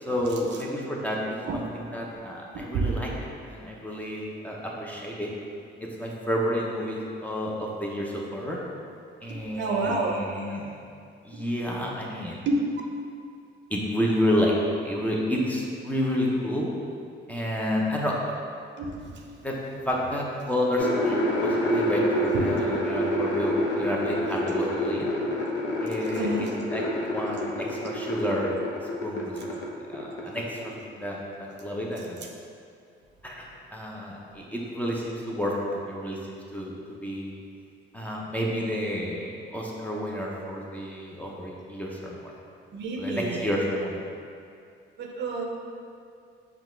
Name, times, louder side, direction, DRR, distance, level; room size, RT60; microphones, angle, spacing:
voice 1, 0.0-3.1 3.4-5.3 5.8-8.6 9.2-10.8 11.2-12.4 13.7-14.5 14.8-16.7 17.3-18.2 19.4-19.6 19.9-25.1 25.8-26.8 27.1-28.6 29.0-29.6 29.9-32.3 33.2-33.4 33.7-36.7 37.0-37.4 37.9-42.3 43.0-44.0, equal, 10° left, -3 dB, 0.7 m, -30 dB
voice 2, 2.7-3.2 9.5-10.2 12.5-12.6 18.8-18.9 22.3-22.5 26.1-26.5 42.7-43.5 45.0-45.4, right 3 dB, 65° right, 0 dB, 0.6 m, -28 dB
sound 1, 20.8-29.7 29.9-30.7, equal, 65° left, 0.7 m, -27 dB
5.5 x 2.4 x 3.3 m, 2.4 s
cardioid pair, 90°, 20 cm